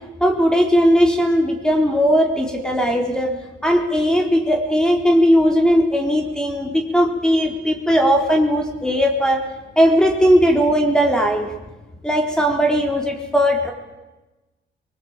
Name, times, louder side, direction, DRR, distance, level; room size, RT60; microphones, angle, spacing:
voice 1, 0.2-3.3 3.6-9.4 9.8-11.5 12.0-13.7, equal, 5° left, 2 dB, 4.2 m, -18 dB
22.0 x 21.0 x 9.1 m, 1.1 s
cardioid pair, 90°, 20 cm